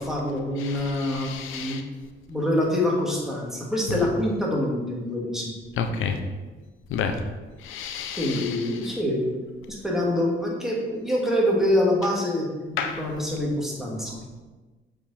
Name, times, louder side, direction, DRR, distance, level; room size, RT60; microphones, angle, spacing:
voice 1, 0.0-1.8 2.3-5.5 8.2-9.2 9.7-14.2, left 1 dB, ahead, -4 dB, 2.3 m, -25 dB
voice 2, 1.2-1.8 5.8-6.1 6.9-7.1 7.7-8.4 12.8-13.0, left 7 dB, 85° left, 6 dB, 0.8 m, -29 dB
7.4 x 4.9 x 4.3 m, 1.2 s
cardioid pair, 90°, 20 cm